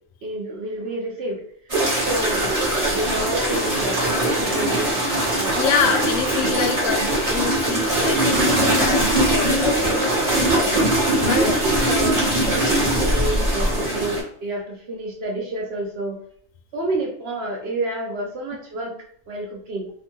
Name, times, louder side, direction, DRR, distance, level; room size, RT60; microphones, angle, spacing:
voice 1, 0.2-1.4 2.1-6.0 6.4-6.6 6.9-7.3 10.4-10.8 11.4-12.2 12.6-16.2 16.7-19.9, right 1 dB, 65° right, 1 dB, 0.7 m, -30 dB
sound 1, 1.7-14.2, right 1 dB, 30° right, 1.0 m, -21 dB
voice 2, 5.5-7.0 7.3-10.2 11.1-11.5, left 6 dB, 80° left, 4 dB, 0.9 m, -26 dB
2.8 x 2.2 x 3.0 m, 0.64 s
omnidirectional pair, 1.4 m